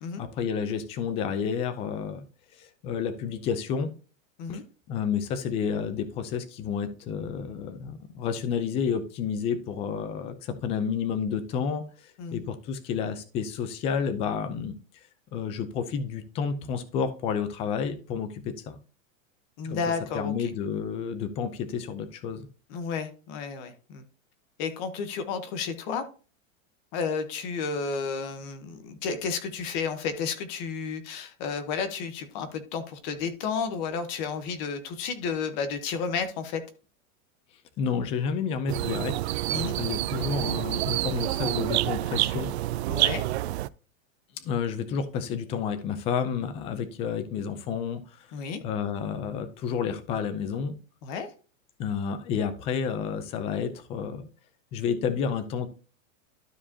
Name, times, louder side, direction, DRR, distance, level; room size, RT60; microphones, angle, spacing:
voice 1, 0.2-2.2 2.6-3.9 4.5-4.6 4.9-11.8 12.3-14.7 15.3-18.8 19.6-19.8 20.1-22.5 37.8-39.1 39.8-42.5 44.4-48.3 48.6-50.7 51.8-54.3 54.7-55.7, left 6 dB, 15° left, 11 dB, 0.5 m, -30 dB
voice 2, 19.6-20.5 22.7-24.0 24.6-26.0 26.9-36.6 39.5-39.8 42.9-43.2 48.3-48.6 51.0-51.3, left 5 dB, 35° left, 9 dB, 1.1 m, -32 dB
sound 1, 38.7-43.7, right 16 dB, 55° right, 0.4 m, -28 dB
12.5 x 4.8 x 2.8 m, 0.36 s
supercardioid pair, 165°, 39 cm